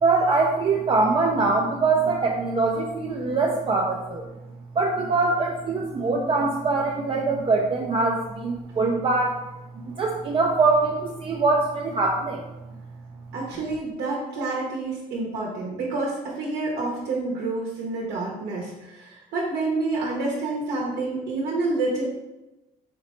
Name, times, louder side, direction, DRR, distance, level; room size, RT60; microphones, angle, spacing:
voice 1, 0.0-4.3 4.8-9.3 9.8-12.4, right 3 dB, 30° right, 0 dB, 0.4 m, -23 dB
voice 2, 13.3-22.0, right 3 dB, 75° right, -3 dB, 0.9 m, -28 dB
4.0 x 3.0 x 3.0 m, 1.0 s
cardioid pair, 110°, 17 cm